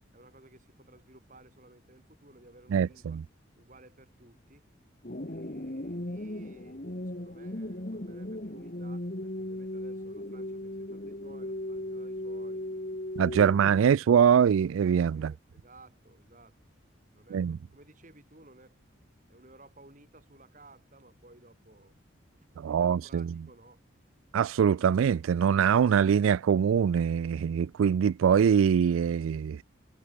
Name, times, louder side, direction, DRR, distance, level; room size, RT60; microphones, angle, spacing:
voice 1, 0.1-3.2 3.6-4.7 5.3-12.6 15.1-16.6 17.1-18.8 19.3-21.9 22.6-23.8, right 2 dB, 40° right, 4.4 m, -56 dB
voice 2, 2.7-3.2 13.2-15.3 17.3-17.6 22.6-23.3 24.3-29.6, right 7 dB, 85° right, 0.3 m, -23 dB
sound 1, 5.0-14.0, left 1 dB, 45° left, 1.8 m, -37 dB
head